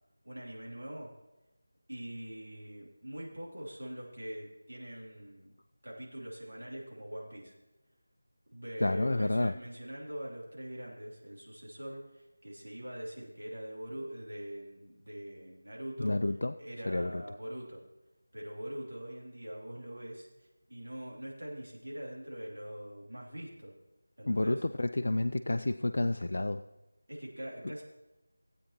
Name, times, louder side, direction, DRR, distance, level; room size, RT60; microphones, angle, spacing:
voice 1, 0.2-1.1 1.9-5.5 5.8-7.5 8.5-16.1 16.6-17.8 18.3-23.7 24.2-24.6 27.1-27.8, equal, 60° right, -3 dB, 3.0 m, -43 dB
voice 2, 8.8-9.5 16.0-16.5 16.9-17.2 24.3-26.6, left 2 dB, 50° left, 8 dB, 0.3 m, -30 dB
16.0 x 8.5 x 3.0 m, 1.0 s
figure-of-eight pair, 165°, 0 cm